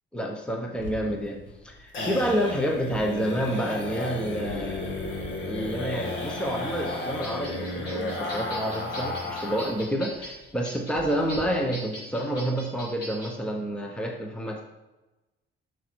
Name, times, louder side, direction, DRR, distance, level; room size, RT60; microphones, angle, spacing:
voice 1, 0.1-1.4 1.6-14.6, equal, 5° left, 1 dB, 0.9 m, -29 dB
sound 1, 0.7-9.8 10.1-10.2 10.5-10.6 11.0-11.4, left 2 dB, 70° left, 2.0 m, -33 dB
sound 2, 6.8-13.3, equal, 55° left, 3.8 m, -42 dB
11.0 x 6.4 x 4.6 m, 1.1 s
cardioid pair, 170°, 20 cm